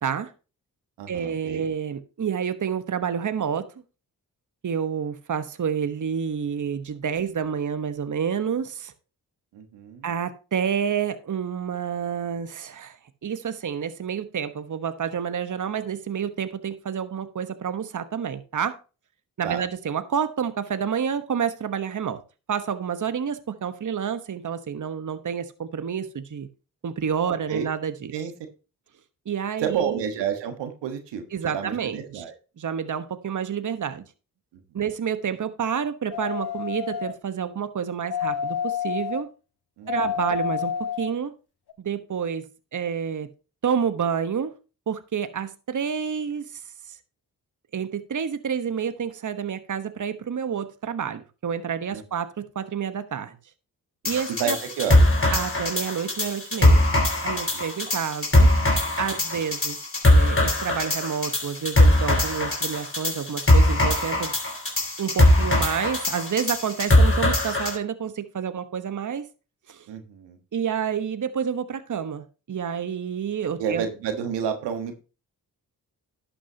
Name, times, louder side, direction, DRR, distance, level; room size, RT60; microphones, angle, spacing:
voice 1, 0.0-0.3 1.1-3.7 4.6-8.9 10.0-18.8 19.4-22.2 22.5-26.5 26.8-28.1 29.3-30.0 31.3-32.2 32.6-34.0 34.7-39.3 39.9-40.7 41.0-41.3 41.8-43.3 43.6-44.5 44.9-46.6 47.7-53.4 54.0-54.6 55.3-56.8 57.2-58.5 59.0-59.8 60.0-64.3 65.0-69.3 69.7-69.9 70.5-73.8, right 7 dB, 45° right, 11 dB, 1.2 m, -29 dB
voice 2, 1.0-1.7 9.5-10.1 19.4-19.6 27.5-27.7 28.1-28.3 29.6-31.2 31.5-32.3 34.5-34.6 39.8-39.9 51.9-52.0 54.1-55.1 57.5-57.7 69.9-70.4 73.6-74.9, right 8 dB, 85° right, 8 dB, 1.5 m, -30 dB
sound 1, 36.1-37.2 38.1-39.2 39.9-41.1 41.7-41.8, left 8 dB, 65° left, 1.6 m, -29 dB
sound 2, 54.0-67.8, left 1 dB, 30° left, 4.1 m, -21 dB
11.5 x 8.5 x 2.8 m, 0.32 s
supercardioid pair, 45°, 41 cm